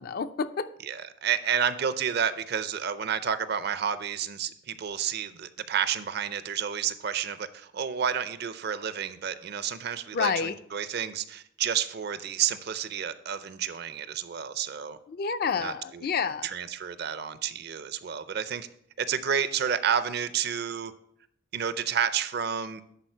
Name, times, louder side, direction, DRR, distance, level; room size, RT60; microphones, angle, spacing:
voice 1, 0.0-0.7 10.1-10.5 15.1-16.5, left 5 dB, 50° left, 11 dB, 0.4 m, -29 dB
voice 2, 0.8-15.0 15.6-16.1 16.4-18.7 19.0-20.9 21.5-22.8, right 8 dB, 55° right, 13 dB, 0.5 m, -30 dB
10.5 x 4.3 x 4.5 m, 0.71 s
head